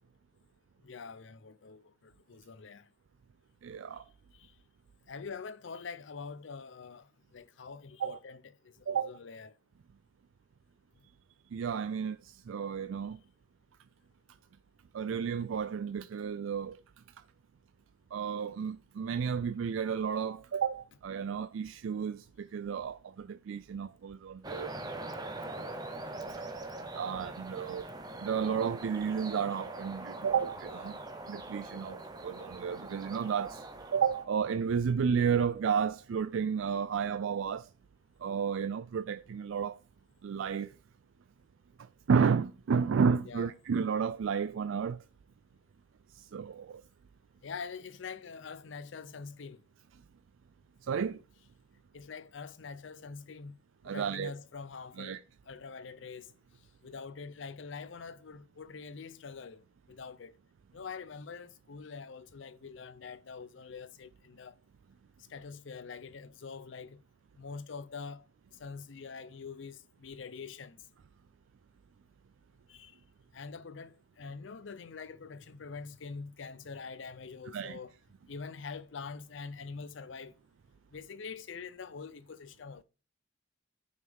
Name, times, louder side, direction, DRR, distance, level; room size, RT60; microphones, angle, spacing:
voice 1, 0.8-2.8 5.1-7.1 7.3-9.5 25.5-25.8 43.3-43.5 47.4-49.6 51.9-53.6 53.8-55.2 55.5-56.3 56.8-59.6 59.9-60.3 60.7-64.5 65.3-67.0 67.4-68.2 68.6-70.8 72.7-72.9 73.3-77.9 78.3-80.3 80.9-82.8, left 5 dB, 65° left, 0.5 m, -44 dB
voice 2, 3.6-4.0 8.0-8.2 8.9-9.1 11.5-13.2 14.9-16.8 18.1-24.7 26.9-27.9 28.2-31.0 31.3-37.7 38.2-39.8 40.2-40.8 41.8-45.0 46.1-46.8 50.8-51.2 53.8-54.3 55.0-55.2 77.5-77.8, right 6 dB, 75° right, 0.4 m, -32 dB
sound 1, 24.4-34.3, right 2 dB, 20° right, 0.8 m, -43 dB
9.5 x 5.6 x 3.5 m
head